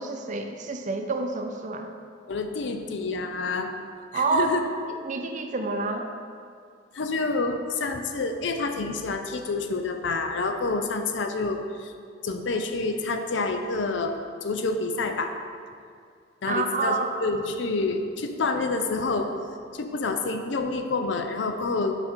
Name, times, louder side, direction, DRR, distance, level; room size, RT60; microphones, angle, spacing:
voice 1, 0.0-1.9 4.1-4.6 4.9-6.0 16.4-17.1, right 3 dB, 40° right, 5 dB, 0.5 m, -28 dB
voice 2, 2.3-3.7 4.1-4.6 6.9-11.9 12.2-14.1 14.4-15.3 16.4-19.3 19.7-22.0, left 3 dB, 65° left, 6 dB, 0.5 m, -28 dB
6.0 x 4.9 x 4.4 m, 2.3 s
head